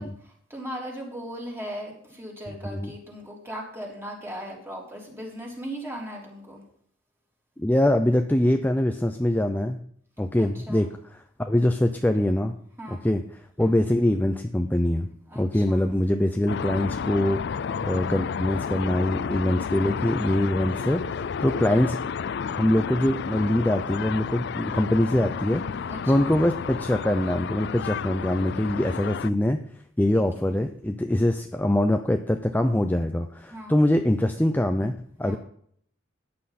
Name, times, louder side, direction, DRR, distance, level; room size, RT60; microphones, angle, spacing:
voice 1, 0.0-6.6 10.4-10.9 12.8-13.1 13.6-13.8 15.3-15.8 21.5-21.9 25.9-26.3 30.1-30.5 33.5-33.8 35.2-35.4, equal, 15° right, -1 dB, 3.5 m, -38 dB
voice 2, 7.6-9.8 10.2-12.5 12.9-15.1 15.4-22.0 22.6-25.6 26.1-29.6 30.0-35.4, left 1 dB, 10° left, 6 dB, 0.6 m, -24 dB
sound 1, 16.5-29.3, left 6 dB, 60° left, 0.4 m, -31 dB
14.5 x 9.8 x 4.2 m, 0.64 s
head